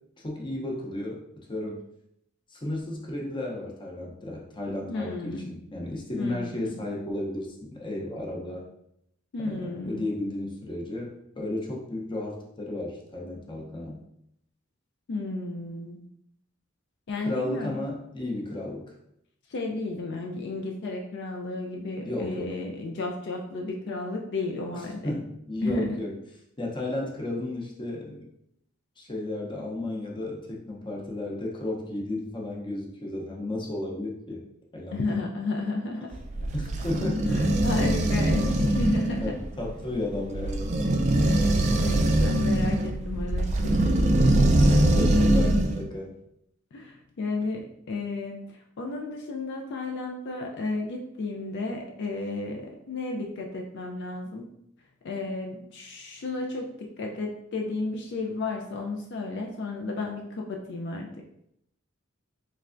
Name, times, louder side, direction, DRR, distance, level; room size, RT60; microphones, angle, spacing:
voice 1, 0.2-1.2 1.5-1.8 2.5-8.6 9.4-14.0 17.2-18.8 22.0-22.5 25.0-26.2 26.6-28.3 29.0-34.4 34.7-35.0 36.5-37.3 37.8-37.9 39.2-40.8 44.7-46.1, left 1 dB, 25° left, -2 dB, 0.7 m, -33 dB
voice 2, 4.9-5.5 6.1-6.8 9.3-10.1 15.1-16.0 17.1-17.8 19.5-25.2 25.6-26.0 34.9-36.1 37.3-39.3 41.1-44.8 45.2-45.3 46.7-54.5 55.0-61.1, left 2 dB, 60° left, 1 dB, 0.4 m, -33 dB
sound 1, 36.1-45.8, right 1 dB, 35° right, 0.4 m, -23 dB
3.3 x 3.3 x 2.5 m, 0.76 s
head